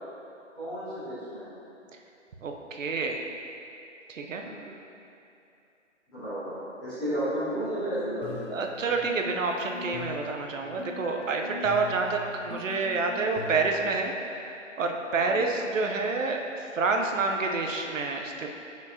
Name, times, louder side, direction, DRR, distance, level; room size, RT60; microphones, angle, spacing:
voice 1, 0.5-1.5 4.4-4.7 6.1-8.5 15.2-15.5, equal, ahead, -19 dB, 0.4 m, -33 dB
voice 2, 2.4-3.2 4.1-4.4 8.5-14.1 14.8-18.5, right 3 dB, 85° right, 3 dB, 0.8 m, -28 dB
sound 1, 7.5-14.0, left 3 dB, 80° left, 1.0 m, -42 dB
6.8 x 6.1 x 2.8 m, 2.7 s
hypercardioid pair, 150°, 38 cm